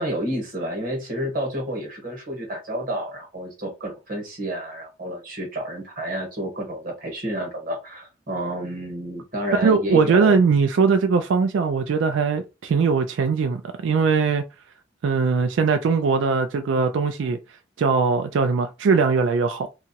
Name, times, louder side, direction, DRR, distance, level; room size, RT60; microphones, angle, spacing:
voice 1, 0.0-10.4, right 1 dB, 45° right, 1.1 m, -30 dB
voice 2, 9.5-14.4 15.0-17.4 17.8-19.7, right 5 dB, 85° right, 0.3 m, -20 dB
2.8 x 2.3 x 2.8 m
head